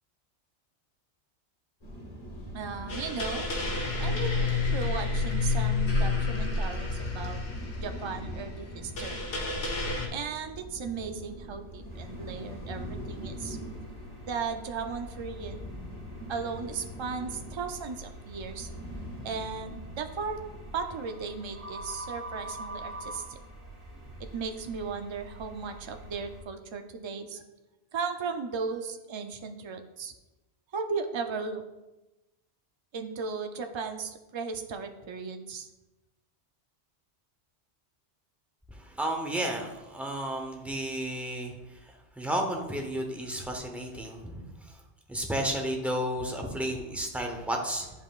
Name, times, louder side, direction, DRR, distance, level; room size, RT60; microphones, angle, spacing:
sound 1, 1.8-20.7, equal, 35° left, 1.4 m, -43 dB
voice 1, 2.5-3.5 4.0-7.4 7.8-9.3 10.1-13.6 14.3-15.6 16.3-18.7 19.2-20.4 20.7-23.4 24.2-27.4 27.9-30.1 30.7-31.6 32.9-35.7, right 5 dB, 45° right, 5 dB, 0.4 m, -36 dB
sound 2, 2.9-10.1, left 3 dB, 80° left, 1.4 m, -29 dB
sound 3, 11.9-26.4, right 1 dB, 75° right, 1.7 m, -45 dB
voice 2, 38.7-41.5 42.2-44.5 45.1-47.9, right 1 dB, ahead, 2 dB, 0.7 m, -32 dB
9.9 x 5.4 x 2.4 m, 1.0 s
omnidirectional pair, 1.2 m